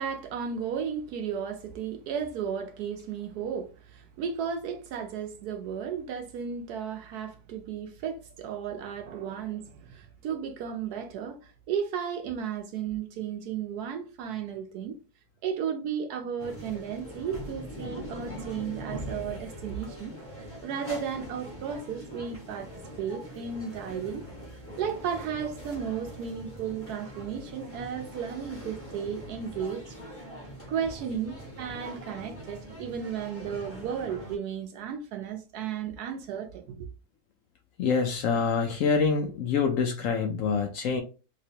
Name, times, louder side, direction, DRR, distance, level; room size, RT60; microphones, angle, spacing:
voice 1, 0.0-15.0 15.4-22.7 23.0-24.2 24.8-30.0 30.7-36.9, right 7 dB, 75° right, 1.1 m, -34 dB
sound 1, 16.4-34.4, equal, 10° left, 0.9 m, -42 dB
voice 2, 37.8-41.0, left 5 dB, 70° left, 0.8 m, -26 dB
3.3 x 2.9 x 2.7 m
omnidirectional pair, 1.7 m